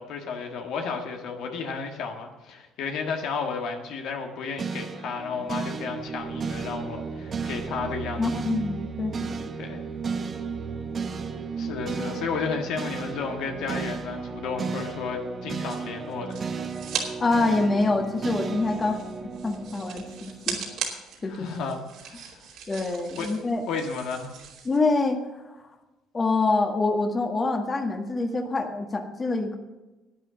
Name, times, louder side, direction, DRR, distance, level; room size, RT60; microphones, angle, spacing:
voice 1, 0.0-8.2 9.6-9.8 11.6-16.4 21.3-22.2 23.1-24.4, left 5 dB, 70° left, 3 dB, 1.6 m, -33 dB
sound 1, 4.6-20.9, right 5 dB, 40° right, 1.1 m, -34 dB
voice 2, 8.2-9.5 17.2-19.0 19.4-20.6 21.2-21.5 22.7-23.6 24.6-25.2 26.1-29.6, left 3 dB, 30° left, 4 dB, 1.6 m, -25 dB
sound 2, 15.7-17.1 17.4-24.8, right 7 dB, 70° right, 2.8 m, -38 dB
11.0 x 8.9 x 6.9 m, 1.1 s
supercardioid pair, 70°, 0 cm